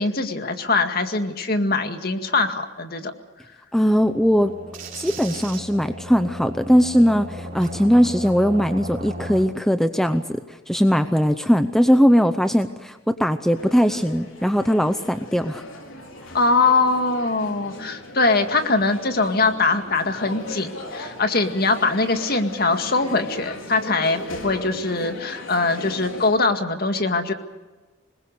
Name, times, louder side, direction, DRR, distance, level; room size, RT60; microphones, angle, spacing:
voice 1, 0.0-3.1 16.3-27.3, left 3 dB, 45° left, 7 dB, 2.0 m, -22 dB
voice 2, 3.7-4.5 5.0-10.4 10.7-15.6, equal, ahead, 9 dB, 0.7 m, -19 dB
sound 1, 3.9-9.5, right 1 dB, 40° right, 4.1 m, -35 dB
sound 2, 13.5-26.3, left 2 dB, 75° left, 4.3 m, -38 dB
25.5 x 21.5 x 6.7 m, 1.2 s
head